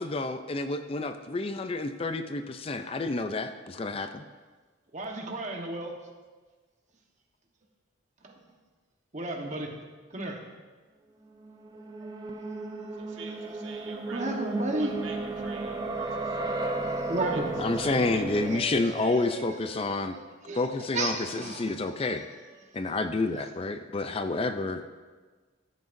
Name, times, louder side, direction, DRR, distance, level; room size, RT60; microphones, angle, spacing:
voice 1, 0.0-4.2 17.6-20.1 20.5-22.2 22.7-24.9, left 3 dB, 30° left, 9 dB, 0.4 m, -29 dB
voice 2, 4.9-5.9 8.2-8.3 9.1-9.7 10.1-10.4 14.1-14.9 16.7-17.5 17.8-18.1 18.3-20.6 20.9-21.9 22.2-22.3 23.3-23.4, right 2 dB, 35° right, 1 dB, 1.2 m, -34 dB
sound 1, 11.3-18.6, right 2 dB, 20° right, 0.6 m, -34 dB
voice 3, 13.1-16.1 17.8-18.2 18.5-18.6 19.0-19.1, right 4 dB, 75° right, 1 dB, 1.5 m, -46 dB
15.5 x 9.5 x 2.6 m, 1.4 s
head